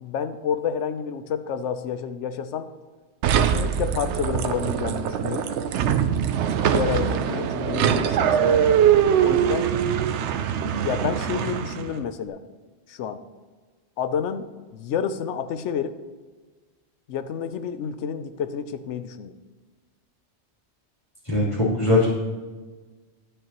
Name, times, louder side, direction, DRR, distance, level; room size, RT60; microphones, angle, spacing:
voice 1, 0.0-2.7 3.3-5.5 6.6-8.6 9.2-9.7 10.6-12.4 12.9-13.2 14.0-15.9 17.1-19.3, left 7 dB, 85° left, 11 dB, 0.9 m, -29 dB
sound 1, 3.2-12.0, right 9 dB, 80° right, 0.9 m, -22 dB
voice 2, 21.2-22.0, left 2 dB, 25° left, -11 dB, 3.1 m, -20 dB
12.0 x 10.0 x 3.0 m, 1.3 s
omnidirectional pair, 1.2 m